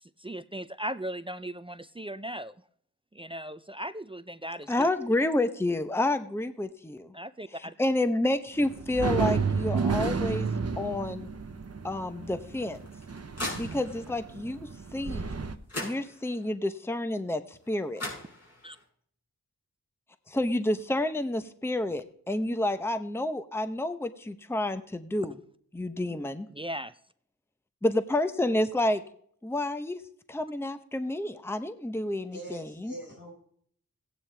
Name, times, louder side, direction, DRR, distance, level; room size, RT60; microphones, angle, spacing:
voice 1, 0.0-2.5 3.1-4.9 7.1-7.7 18.6-18.8 26.5-26.9, right 1 dB, 15° right, 13 dB, 0.4 m, -38 dB
voice 2, 4.7-7.1 7.5-10.5 10.8-11.3 11.8-12.8 13.6-15.3 15.8-18.0 20.3-25.3 25.7-26.5 27.8-29.0 29.4-30.0 30.3-32.9, left 1 dB, 5° left, 10 dB, 0.8 m, -29 dB
sound 1, 8.6-15.6, right 5 dB, 45° right, 0.9 m, -31 dB
sound 2, 12.5-14.2 15.3-15.4 15.7-16.5 17.6-17.7 18.0-18.8, left 1 dB, 45° left, 5.3 m, -39 dB
voice 3, 32.3-33.3, right 1 dB, 85° left, -2 dB, 5.0 m, -42 dB
16.0 x 9.3 x 3.4 m, 0.62 s
cardioid pair, 50°, 34 cm